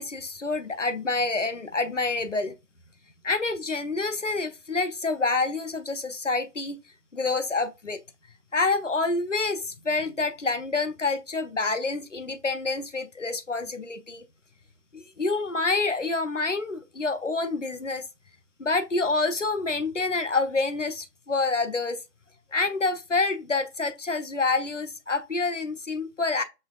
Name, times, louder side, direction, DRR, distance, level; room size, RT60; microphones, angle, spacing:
voice 1, 0.0-2.5 3.2-6.8 7.1-8.0 8.5-14.3 14.9-18.0 18.6-22.0 22.5-26.4, left 3 dB, 50° left, 0.5 m, -27 dB
5.4 x 3.2 x 2.3 m
figure-of-eight pair, 160°, 50 cm